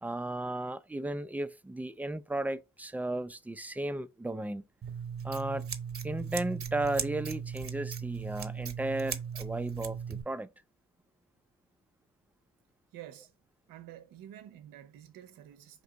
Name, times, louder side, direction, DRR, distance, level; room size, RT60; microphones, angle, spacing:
voice 1, 0.0-4.6 5.2-5.7 6.0-10.5, right 2 dB, 5° right, 0.4 m, -35 dB
Scissors, 4.8-10.2, right 7 dB, 40° right, 1.0 m, -38 dB
voice 2, 12.9-13.3 13.7-15.8, right 11 dB, 70° right, 0.6 m, -49 dB
4.4 x 2.8 x 3.5 m
hypercardioid pair, 50°, 35 cm